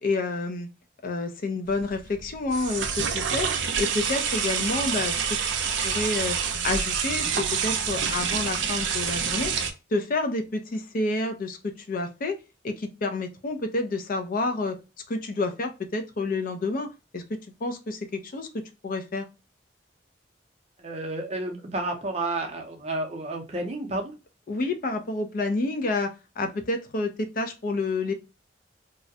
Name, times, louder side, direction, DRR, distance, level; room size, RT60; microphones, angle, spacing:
voice 1, 0.0-0.7 1.0-3.5 3.8-5.4 5.8-6.4 6.6-9.5 9.9-12.4 12.6-14.8 15.1-16.9 17.1-19.3 24.5-26.1 26.4-28.1, left 3 dB, 50° left, 7 dB, 0.4 m, -29 dB
sound 1, 1.7-9.7, right 6 dB, 85° right, 0.4 m, -27 dB
voice 2, 20.8-24.1, right 2 dB, 35° right, 3 dB, 0.5 m, -31 dB
2.3 x 2.1 x 2.6 m, 0.28 s
head